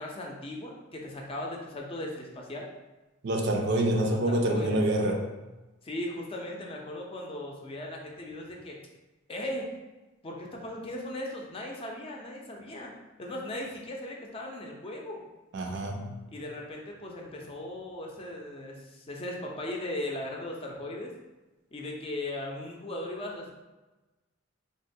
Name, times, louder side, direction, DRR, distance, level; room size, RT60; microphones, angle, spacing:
voice 1, 0.0-2.7 4.1-4.8 5.8-8.8 9.3-9.7 10.2-12.9 13.2-15.2 16.3-21.1 21.7-23.5, left 1 dB, 30° left, 0 dB, 0.4 m, -38 dB
voice 2, 3.2-5.2 15.5-16.2, right 1 dB, 60° right, 2 dB, 0.4 m, -26 dB
3.8 x 2.1 x 2.6 m, 1.1 s
head